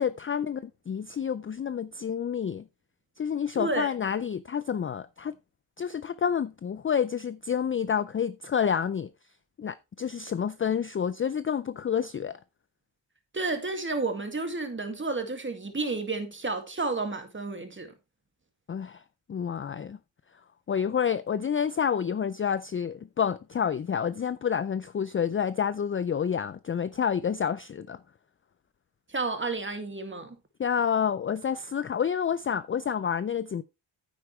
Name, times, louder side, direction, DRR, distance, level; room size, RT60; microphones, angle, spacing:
voice 1, 0.0-2.6 3.2-5.3 5.8-9.1 9.6-12.4 18.7-19.0 19.3-20.0 20.7-28.0 30.6-33.6, left 7 dB, 30° left, 0.4 m, -29 dB
voice 2, 3.6-3.9 13.3-17.9 29.1-30.4, right 3 dB, 25° right, 2.1 m, -31 dB
9.6 x 8.3 x 3.2 m
cardioid pair, 85°, 50 cm